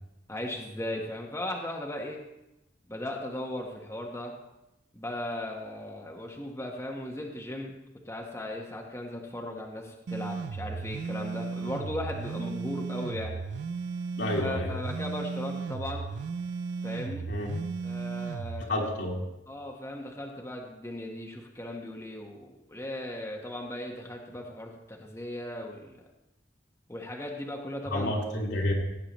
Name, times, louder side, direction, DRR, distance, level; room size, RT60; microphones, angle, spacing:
voice 1, 0.3-2.2 2.9-4.3 4.9-7.7 8.0-13.4 14.4-16.0 16.8-17.2 17.8-18.9 19.5-26.0 26.9-28.2, left 1 dB, 15° left, 0 dB, 1.1 m, -37 dB
sound 1, 10.1-18.6, right 5 dB, 70° right, 0.4 m, -35 dB
voice 2, 14.2-14.7 17.3-17.5 18.7-19.2 27.9-28.7, left 1 dB, 75° left, -2 dB, 2.4 m, -29 dB
16.5 x 8.5 x 3.0 m, 0.92 s
head